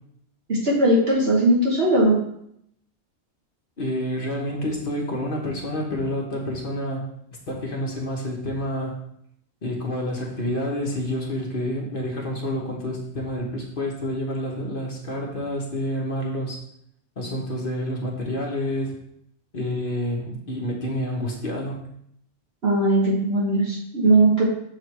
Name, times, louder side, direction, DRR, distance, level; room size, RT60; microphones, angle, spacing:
voice 1, 0.5-2.2 22.6-24.4, right 1 dB, 60° right, -5 dB, 1.5 m, -19 dB
voice 2, 3.8-7.0 7.5-9.0 9.6-16.6 17.2-18.9 19.5-21.8, left 1 dB, 50° left, -1 dB, 1.2 m, -28 dB
6.5 x 3.3 x 4.6 m, 0.73 s
omnidirectional pair, 1.2 m